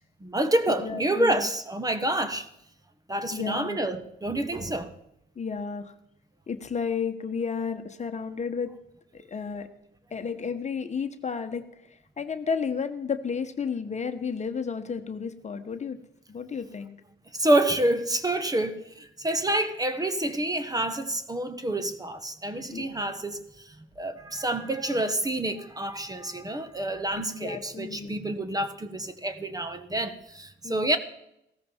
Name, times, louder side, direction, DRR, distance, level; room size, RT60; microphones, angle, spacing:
voice 1, 0.2-2.5 3.1-4.9 17.3-23.4 24.0-31.0, right 1 dB, 20° right, 1.2 m, -28 dB
voice 2, 0.8-1.5 3.3-3.8 5.4-5.9 6.5-8.7 9.1-9.7 10.1-11.6 12.2-16.0 16.3-17.0 22.7-22.9 27.2-28.2 30.6-30.9, left 6 dB, 35° left, 1.2 m, -32 dB
16.0 x 13.5 x 4.5 m
cardioid pair, 90°, 20 cm